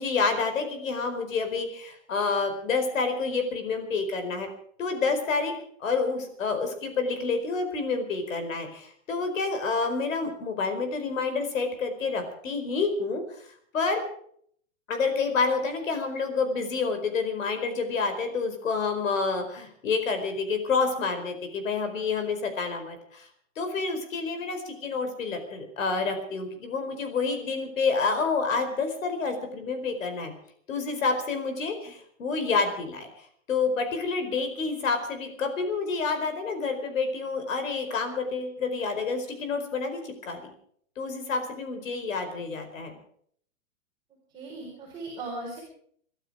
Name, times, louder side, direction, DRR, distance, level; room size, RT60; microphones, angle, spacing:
voice 1, 0.0-4.5 4.8-13.4 13.7-14.0 14.9-23.3 23.6-30.3 30.7-33.1 33.5-40.5 41.0-42.9, left 4 dB, 90° left, 7 dB, 4.8 m, -28 dB
voice 2, 44.3-45.6, right 2 dB, 10° right, -5 dB, 4.8 m, -38 dB
24.0 x 12.5 x 4.9 m, 0.62 s
hypercardioid pair, 175°, 38 cm